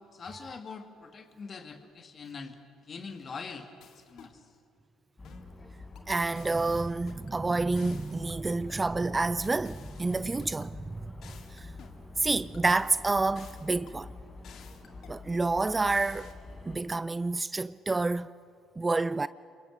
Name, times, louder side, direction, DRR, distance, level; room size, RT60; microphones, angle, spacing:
voice 1, 0.1-2.6 2.9-3.7 3.9-4.4, left 5 dB, 45° left, 2.4 m, -43 dB
sound 1, 3.8-4.4 5.2-5.5 6.0-7.4 7.8-8.9 9.4-10.7 11.2-12.0 12.5-14.0 14.4-15.2 15.7-16.3, left 7 dB, 60° left, 2.1 m, -54 dB
sound 2, 5.2-16.8, left 2 dB, 30° left, 4.3 m, -46 dB
voice 2, 6.1-11.1 11.5-11.7 12.2-14.1 15.1-16.3 16.7-18.3 18.8-19.3, right 3 dB, 25° right, 0.5 m, -29 dB
27.0 x 22.5 x 6.6 m
hypercardioid pair, 55°, 0 cm